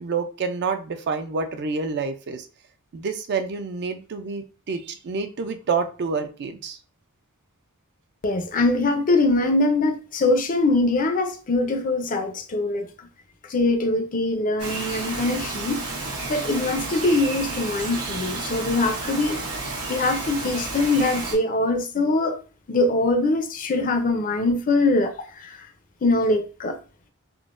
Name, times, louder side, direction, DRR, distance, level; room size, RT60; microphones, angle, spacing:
voice 1, 0.0-2.5 2.9-6.8, right 5 dB, 50° right, 0.4 m, -28 dB
voice 2, 8.2-12.9 13.5-15.8 16.3-19.4 19.9-22.4 22.7-25.7 26.0-26.8, left 2 dB, 40° left, 0.5 m, -22 dB
Bird vocalization bird call bird song, 14.6-21.3, right 3 dB, 85° right, 1.0 m, -31 dB
3.7 x 2.1 x 2.5 m
head